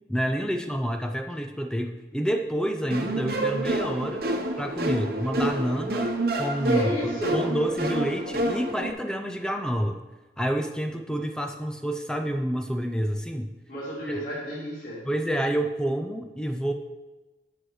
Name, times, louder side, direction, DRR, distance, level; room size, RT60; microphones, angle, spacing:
voice 1, 0.1-4.2 4.6-6.9 7.3-10.0 10.4-13.5 14.0-14.2 15.0-16.7, equal, 5° left, 5 dB, 0.4 m, -28 dB
sound 1, 2.9-8.9, right 1 dB, 55° right, 1.0 m, -28 dB
voice 2, 6.7-7.5 13.7-15.1, equal, 45° left, -8 dB, 2.5 m, -31 dB
10.0 x 6.4 x 4.8 m, 1.1 s
head